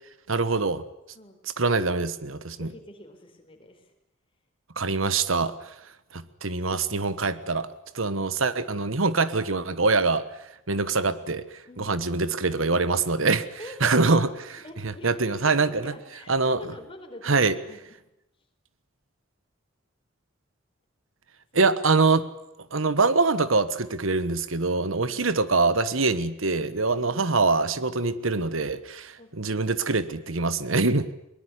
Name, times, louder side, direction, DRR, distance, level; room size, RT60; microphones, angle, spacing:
voice 1, 0.3-0.8 1.6-2.7 4.8-5.7 6.1-7.7 7.9-10.2 10.7-11.4 11.8-14.3 14.8-15.9 16.3-16.6 17.2-17.6 21.5-22.3 22.7-31.1, right 3 dB, 85° right, 14 dB, 1.3 m, -24 dB
voice 2, 2.6-3.9 11.7-12.0 13.6-14.4 14.6-17.9 21.5-21.6 24.9-25.3 25.9-26.1 26.9-27.4 29.2-30.2, left 1 dB, 25° left, 4 dB, 4.4 m, -46 dB
22.5 x 21.0 x 9.8 m, 0.85 s
head